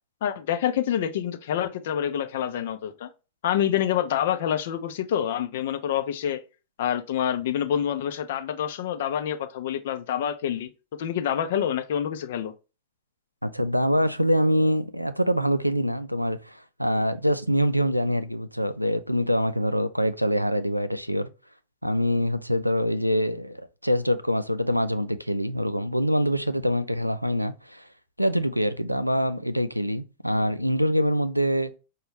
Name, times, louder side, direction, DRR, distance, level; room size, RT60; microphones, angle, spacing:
voice 1, 0.2-3.1 3.4-6.4 6.8-10.7 11.0-12.5, left 10 dB, 55° left, 0.5 m, -27 dB
voice 2, 13.4-21.3 21.8-27.9 28.2-31.7, equal, 90° right, 0.3 m, -25 dB
5.0 x 2.3 x 3.2 m
figure-of-eight pair, 90°, 0 cm